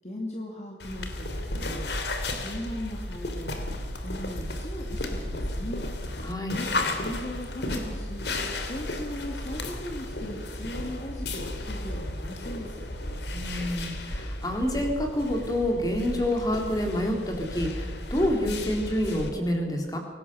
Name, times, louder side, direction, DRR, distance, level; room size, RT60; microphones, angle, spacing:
voice 1, 0.0-1.8 2.3-3.6 4.0-5.9 6.5-8.3 8.6-12.8, left 1 dB, 40° left, 0 dB, 2.4 m, -38 dB
sound 1, 0.8-19.3, left 1 dB, 80° left, 3.1 m, -34 dB
voice 2, 6.2-6.6 13.3-20.0, left 1 dB, 20° left, 2 dB, 3.8 m, -28 dB
24.5 x 18.0 x 7.0 m, 1.3 s
head